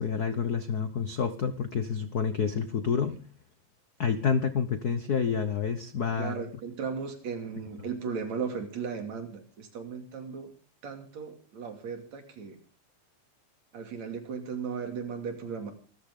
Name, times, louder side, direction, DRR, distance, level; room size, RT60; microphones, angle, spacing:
voice 1, 0.0-3.2 4.0-6.4, left 6 dB, 85° left, 10 dB, 0.8 m, -28 dB
voice 2, 6.2-10.5 10.8-12.6 13.7-15.7, right 6 dB, 65° right, 6 dB, 3.9 m, -36 dB
25.5 x 14.0 x 3.8 m, 0.38 s
omnidirectional pair, 3.4 m